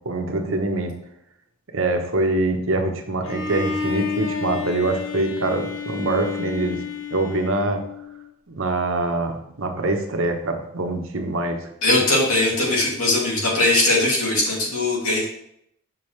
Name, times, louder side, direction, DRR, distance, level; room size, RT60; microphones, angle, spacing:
voice 1, 0.0-0.9 1.7-6.8 7.1-7.8 8.5-11.7, right 2 dB, 65° right, 4 dB, 1.0 m, -24 dB
Bowed string instrument, 3.2-8.3, left 6 dB, 65° left, 0.8 m, -30 dB
voice 2, 11.8-15.2, left 2 dB, 80° left, -4 dB, 2.5 m, -20 dB
7.2 x 5.6 x 3.2 m, 0.74 s
head